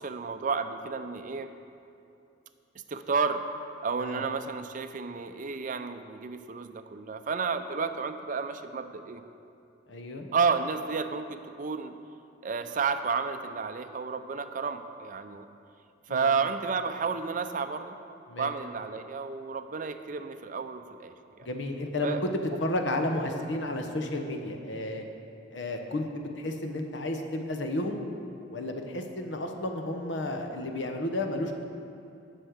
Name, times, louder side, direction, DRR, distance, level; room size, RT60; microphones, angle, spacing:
voice 1, 0.0-1.5 2.9-3.4 3.8-9.2 10.3-11.9 12.4-15.5 16.1-18.0 18.4-21.5 22.0-22.2, right 5 dB, 45° right, 8 dB, 0.5 m, -31 dB
voice 2, 9.9-10.3 16.1-16.3 18.3-18.5 21.4-25.0 25.5-28.0 28.5-31.6, left 1 dB, 65° left, 4 dB, 0.9 m, -32 dB
8.1 x 6.3 x 8.0 m, 2.7 s
head